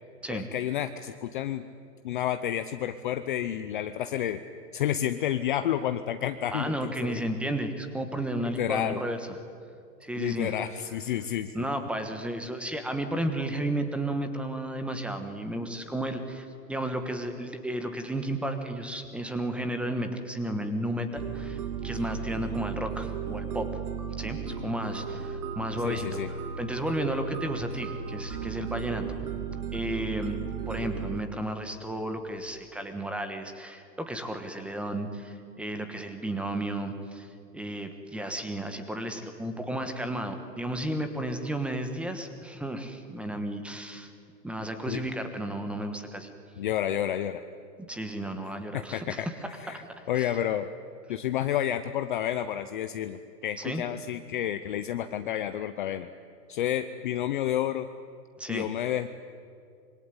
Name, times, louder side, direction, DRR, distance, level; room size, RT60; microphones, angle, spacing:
voice 1, 0.3-1.6 2.0-4.4 4.7-7.2 8.4-9.0 10.2-11.5 25.8-26.3 44.9-45.0 46.6-47.4 48.7-49.3 49.6-50.7 51.1-56.1 56.5-57.9 58.5-59.1, left 11 dB, 30° left, 10 dB, 0.7 m, -30 dB
voice 2, 6.5-9.4 10.0-10.5 11.5-23.7 24.2-29.2 29.7-30.4 30.7-44.1 44.4-46.3 47.9-49.8 50.2-50.3 53.6-53.8 58.4-58.7, right 1 dB, ahead, 7 dB, 1.2 m, -33 dB
sound 1, 21.2-31.2, right 7 dB, 60° right, 2.7 m, -35 dB
26.0 x 23.5 x 9.7 m, 2.4 s
hypercardioid pair, 155°, 50 cm